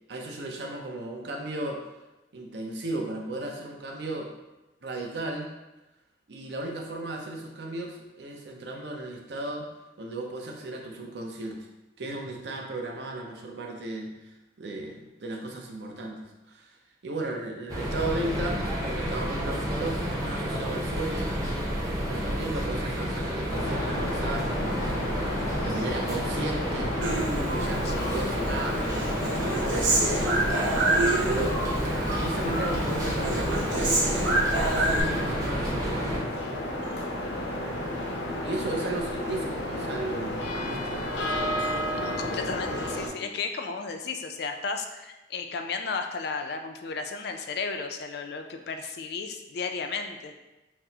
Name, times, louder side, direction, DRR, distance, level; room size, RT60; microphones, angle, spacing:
voice 1, 0.1-1.9 2.3-4.3 4.8-5.5 6.3-9.7 10.0-11.7 12.0-16.8 17.0-21.4 22.1-24.8 25.6-27.0 27.5-31.0 31.3-31.6 32.1-34.3 34.6-36.3 38.4-41.1, right 2 dB, 65° right, 1 dB, 0.6 m, -35 dB
sound 1, 17.7-36.2, equal, 20° right, 0.7 m, -30 dB
sound 2, 23.5-43.1, left 1 dB, 90° left, 0.7 m, -32 dB
Human voice, 27.0-28.2 28.5-31.7 32.0-32.8 33.0-35.0, right 2 dB, 90° right, 0.8 m, -27 dB
voice 2, 27.8-28.2 37.2-37.5 42.0-50.3, left 4 dB, 60° left, 6 dB, 0.4 m, -34 dB
5.9 x 2.0 x 2.7 m, 1.0 s
head